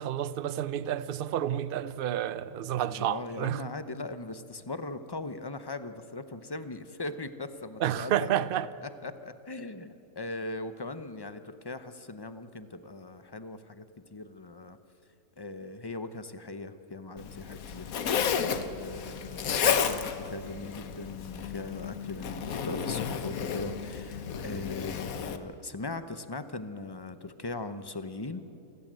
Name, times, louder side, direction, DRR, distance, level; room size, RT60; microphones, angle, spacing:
voice 1, 0.0-3.6 7.8-8.7, right 11 dB, 55° right, 0.7 m, -30 dB
voice 2, 2.9-8.3 8.8-13.8 14.1-14.8 15.4-18.2 18.5-28.4, left 3 dB, 25° left, 0.6 m, -40 dB
Zipper (clothing), 17.2-25.4, left 7 dB, 75° left, 1.4 m, -32 dB
28.0 x 14.5 x 7.5 m
omnidirectional pair, 1.5 m